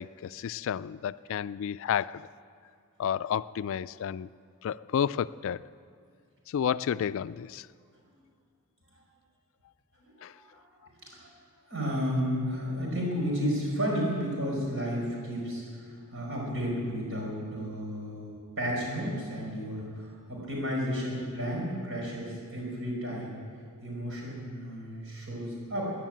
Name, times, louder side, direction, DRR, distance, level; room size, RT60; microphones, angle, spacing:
voice 1, 0.0-2.3 3.0-4.3 4.6-5.7 6.5-7.7 10.2-10.3, left 8 dB, 60° left, 17 dB, 0.3 m, -31 dB
voice 2, 10.0-10.6 11.0-11.3 11.7-23.4 23.8-25.9, equal, 60° right, -3 dB, 5.3 m, -32 dB
15.0 x 10.0 x 9.2 m, 2.2 s
head